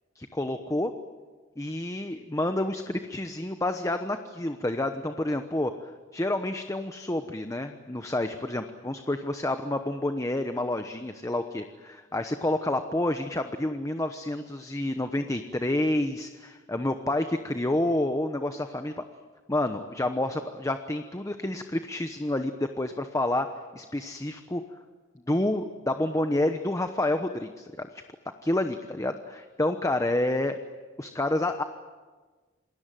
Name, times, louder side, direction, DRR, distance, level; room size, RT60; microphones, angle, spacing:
voice 1, 0.1-0.9 1.6-19.0 19.5-24.6 25.3-28.0 28.4-30.6 31.0-31.6, left 1 dB, 15° left, 7 dB, 1.0 m, -29 dB
27.5 x 20.5 x 9.2 m, 1.3 s
head